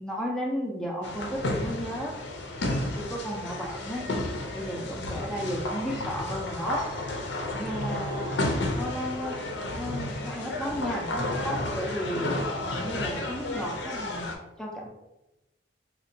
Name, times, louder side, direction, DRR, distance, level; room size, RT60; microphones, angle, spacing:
voice 1, 0.0-2.2 2.7-4.0 4.5-6.8 7.5-8.5 8.7-9.4 9.8-12.3 12.7-14.9, equal, 5° left, -2 dB, 0.4 m, -34 dB
sound 1, 1.0-14.3, left 2 dB, 65° left, 0.4 m, -32 dB
3.7 x 2.1 x 2.6 m, 0.96 s
head